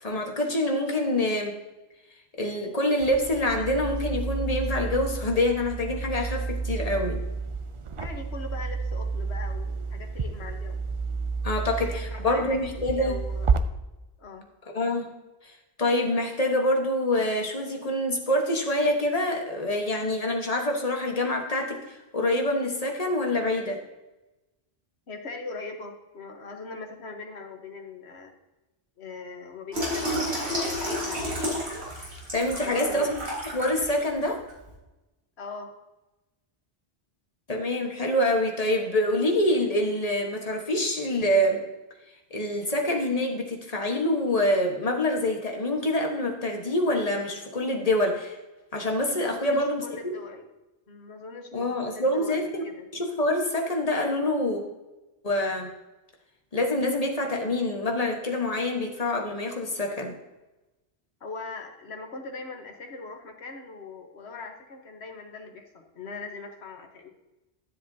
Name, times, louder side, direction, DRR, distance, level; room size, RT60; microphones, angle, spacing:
voice 1, 0.0-1.5 2.4-7.2 11.4-13.2 14.7-15.1 15.8-23.8 32.3-34.4 37.5-41.6 42.3-48.4 48.7-50.1 51.5-52.6 52.9-54.6 55.2-55.7 56.5-60.1, left 1 dB, 35° left, 2 dB, 1.4 m, -26 dB
sound 1, 3.0-13.6, right 4 dB, 45° right, 0.4 m, -31 dB
voice 2, 8.0-10.8 11.9-13.6 14.2-14.5 25.1-28.3 29.0-31.6 32.6-33.1 35.4-35.7 49.2-50.5 50.9-52.9 61.2-67.1, left 3 dB, 85° left, 4 dB, 1.4 m, -41 dB
Water tap faucet / Sink (filling or washing), 29.7-34.0 34.5-34.7, equal, 85° right, 3.2 m, -31 dB
12.5 x 7.6 x 2.8 m, 1.0 s
omnidirectional pair, 1.1 m